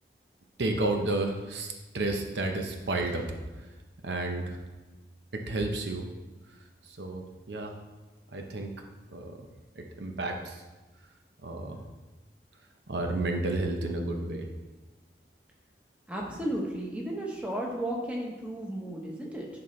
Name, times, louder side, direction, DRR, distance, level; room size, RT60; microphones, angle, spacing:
voice 1, 0.6-3.3 4.0-4.6 5.3-6.1 6.9-7.7 8.3-8.7 9.1-9.4 9.8-10.6 11.4-11.8 12.9-14.5, right 2 dB, 75° right, 3 dB, 0.8 m, -31 dB
voice 2, 16.1-19.5, right 1 dB, 5° right, -2 dB, 1.1 m, -34 dB
10.5 x 4.4 x 3.2 m, 1.2 s
head